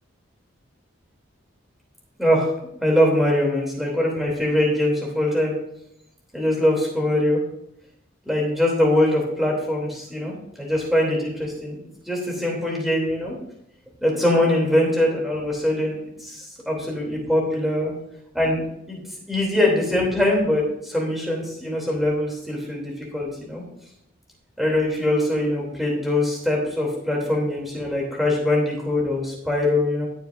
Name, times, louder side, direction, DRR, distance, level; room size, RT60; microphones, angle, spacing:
voice 1, 2.2-2.5 2.8-5.5 6.3-7.4 8.2-11.8 12.1-13.3 14.0-17.9 18.3-18.6 18.9-19.0 19.3-23.6 24.6-30.1, left 1 dB, ahead, -2 dB, 3.0 m, -22 dB
19.0 x 7.1 x 2.6 m, 0.77 s
head